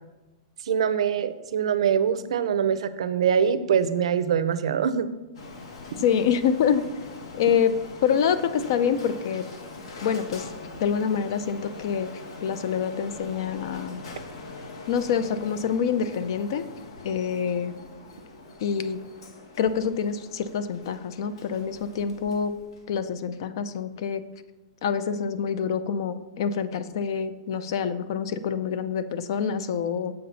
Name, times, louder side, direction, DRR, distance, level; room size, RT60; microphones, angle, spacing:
voice 1, 0.6-5.1, right 7 dB, 75° right, 13 dB, 0.5 m, -23 dB
Printer, 5.3-23.0, left 3 dB, 65° left, 1.2 m, -43 dB
voice 2, 6.0-6.9 7.3-7.7 8.0-9.4 10.0-10.5 10.8-12.1 12.4-14.0 14.9-16.6 17.0-17.7 18.6-19.0 19.6-22.5 22.9-24.2 24.8-30.1, left 7 dB, 50° left, 13 dB, 0.5 m, -26 dB
7.5 x 5.9 x 4.1 m, 1.1 s
supercardioid pair, 175°, 3 cm